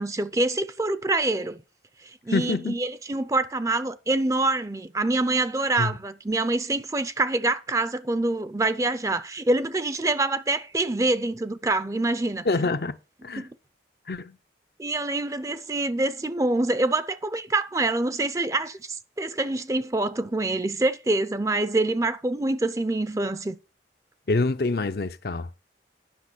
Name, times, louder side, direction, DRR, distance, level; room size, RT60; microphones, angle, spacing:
voice 1, 0.0-1.6 2.3-12.5 13.4-13.5 14.8-23.6, right 2 dB, 20° right, 0.5 m, -26 dB
voice 2, 2.3-2.8 5.8-5.9 12.4-13.0 13.2-13.5 14.1-14.4 24.3-25.5, left 3 dB, 60° left, 0.6 m, -26 dB
10.5 x 5.9 x 6.1 m
head